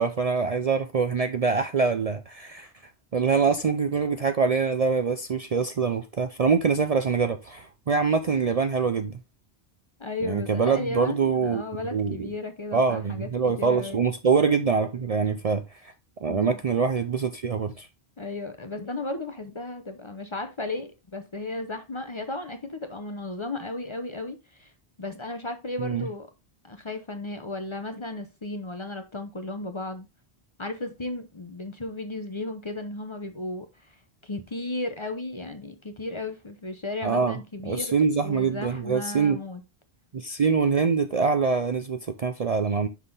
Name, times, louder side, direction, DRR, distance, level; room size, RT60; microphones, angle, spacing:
voice 1, 0.0-2.7 3.1-9.2 10.2-11.6 11.9-12.3 12.7-15.9 16.2-17.9 25.8-26.0 37.0-37.4 37.6-39.4 40.1-42.9, right 5 dB, 45° right, 0.5 m, -24 dB
voice 2, 10.0-13.3 13.6-14.1 16.3-16.6 18.2-24.7 25.0-26.3 26.6-30.1 30.6-33.7 34.2-37.9 38.2-39.6, left 2 dB, 30° left, 0.7 m, -34 dB
5.9 x 5.8 x 3.7 m
omnidirectional pair, 1.1 m